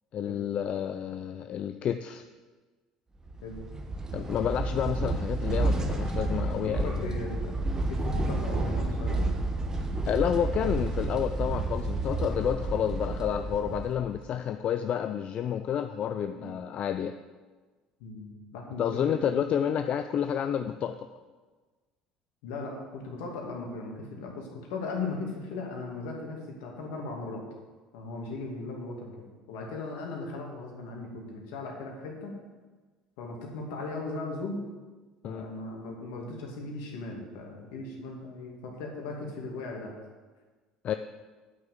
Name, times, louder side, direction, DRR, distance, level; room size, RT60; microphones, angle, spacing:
voice 1, 0.1-2.2 4.1-7.1 10.1-17.1 18.8-21.1 35.2-35.5 40.8-40.9, left 9 dB, 50° left, 9 dB, 0.5 m, -30 dB
sound 1, 3.3-14.3, right 2 dB, 25° right, 1.2 m, -30 dB
voice 2, 6.7-7.6 7.9-9.3 16.3-16.5 18.0-19.4 19.8-19.9 22.4-27.4 27.9-29.1 29.5-32.4 33.2-34.6 35.2-39.9, left 3 dB, 70° left, 0 dB, 2.4 m, -38 dB
9.2 x 6.1 x 7.3 m, 1.3 s
hypercardioid pair, 70°, 3 cm